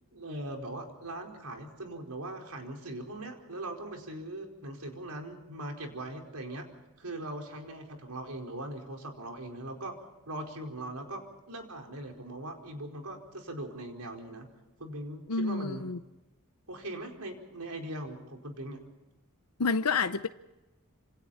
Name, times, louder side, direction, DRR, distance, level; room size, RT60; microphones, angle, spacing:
voice 1, 0.1-6.7 7.0-10.0 10.3-11.2 11.5-14.5 14.8-15.8 16.7-18.8, right 1 dB, 85° right, 4.7 m, -40 dB
voice 2, 15.3-16.0 19.6-20.3, left 4 dB, 85° left, 0.8 m, -28 dB
27.5 x 27.0 x 4.3 m
head